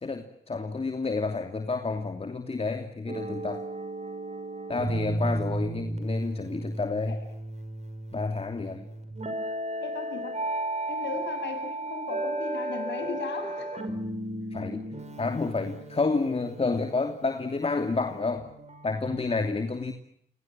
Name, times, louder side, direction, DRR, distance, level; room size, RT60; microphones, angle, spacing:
voice 1, 0.0-3.6 4.7-7.2 8.1-8.9 14.5-14.9 15.2-18.5 18.8-19.9, left 3 dB, 35° left, 6 dB, 3.0 m, -29 dB
sound 1, 3.1-19.1, right 1 dB, 40° right, 6.2 m, -34 dB
voice 2, 9.8-10.5 10.9-13.9, left 5 dB, 85° left, 8 dB, 7.6 m, -36 dB
30.0 x 26.0 x 7.6 m, 0.72 s
cardioid pair, 80°, 18 cm